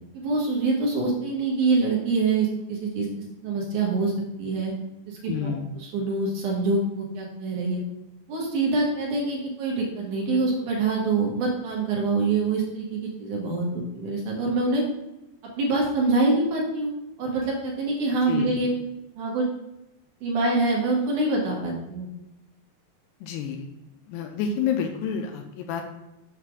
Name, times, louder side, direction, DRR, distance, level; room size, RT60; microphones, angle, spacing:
voice 1, 0.1-3.1 3.4-4.1 4.4-4.7 5.1-5.5 5.8-7.8 8.3-14.8 15.6-16.9 17.2-18.7 19.2-19.5 20.2-22.1, right 3 dB, 65° right, -2 dB, 2.0 m, -25 dB
voice 2, 5.3-5.7 18.3-18.5 23.2-23.7 24.1-25.8, left 7 dB, 80° left, 5 dB, 2.4 m, -29 dB
7.3 x 3.3 x 6.2 m, 0.92 s
omnidirectional pair, 5.1 m